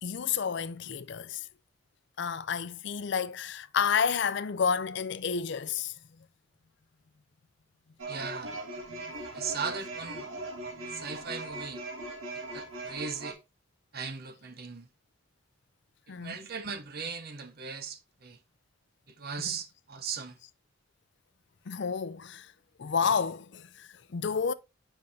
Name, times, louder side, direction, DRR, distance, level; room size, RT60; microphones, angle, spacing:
voice 1, 0.0-1.5 2.2-5.9 8.9-9.0 10.9-11.1 16.1-16.4 21.7-22.5 22.8-24.5, left 6 dB, 60° left, 0.5 m, -30 dB
sound 1, 8.0-13.3, right 2 dB, 85° right, 1.8 m, -40 dB
voice 2, 8.1-8.6 9.3-10.3 10.9-11.8 12.5-13.4 13.9-14.9 16.2-18.4 19.1-20.4, right 5 dB, 50° right, 0.8 m, -38 dB
7.5 x 5.4 x 2.7 m
head